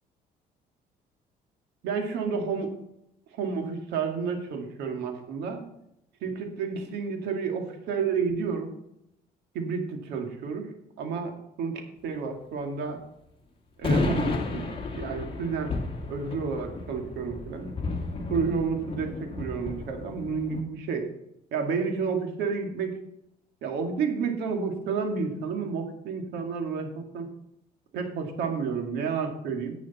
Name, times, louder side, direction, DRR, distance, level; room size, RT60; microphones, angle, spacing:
voice 1, 1.8-2.7 3.3-5.6 6.2-8.7 9.5-10.7 11.0-11.3 11.6-13.0 13.8-14.7 14.9-15.7 16.1-17.7 18.3-21.1 21.5-23.0 23.6-27.3 27.9-29.8, right 5 dB, 80° right, 4 dB, 2.2 m, -30 dB
sound 1, 13.8-20.6, left 2 dB, 30° left, 2.2 m, -32 dB
11.0 x 8.3 x 4.2 m, 0.80 s
cardioid pair, 110°, 17 cm